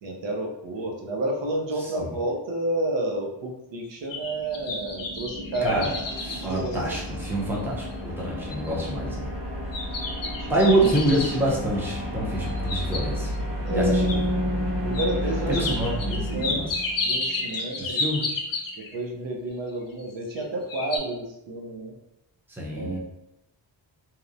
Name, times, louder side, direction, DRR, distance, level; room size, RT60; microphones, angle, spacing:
voice 1, 0.0-7.0 10.2-10.6 13.6-14.0 14.8-15.6 16.1-16.7 17.0-18.2 18.8-21.9 22.7-23.0, right 1 dB, 80° right, 1 dB, 0.6 m, -31 dB
voice 2, 1.8-2.1 5.6-6.0 6.3-9.3 10.5-13.4 13.7-14.3 15.5-16.7 17.8-18.2 22.6-23.0, right 1 dB, 5° right, -4 dB, 0.5 m, -26 dB
sound 1, 3.8-7.4 7.9-8.0 8.5-8.9 9.7-11.4 12.4-13.4 14.1-14.2 14.9-15.1 15.5-19.0 20.0-20.4 20.7-21.0, left 3 dB, 50° left, 0.5 m, -31 dB
sound 2, 4.1-17.2, equal, 50° right, 1.3 m, -33 dB
sound 3, 13.7-16.9, equal, 30° right, 1.3 m, -29 dB
2.8 x 2.0 x 2.4 m, 0.86 s
wide cardioid pair, 120°, 44 cm